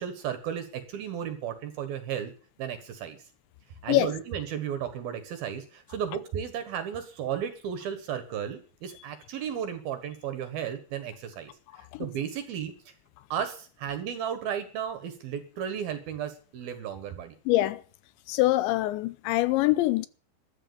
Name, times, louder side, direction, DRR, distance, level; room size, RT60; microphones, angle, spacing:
voice 1, 0.0-2.3 2.6-3.2 3.8-12.9 13.3-17.4, right 8 dB, 65° right, 2.9 m, -34 dB
voice 2, 17.5-17.8 18.3-20.1, left 16 dB, 80° left, 3.0 m, -24 dB
13.5 x 10.5 x 7.0 m
omnidirectional pair, 5.3 m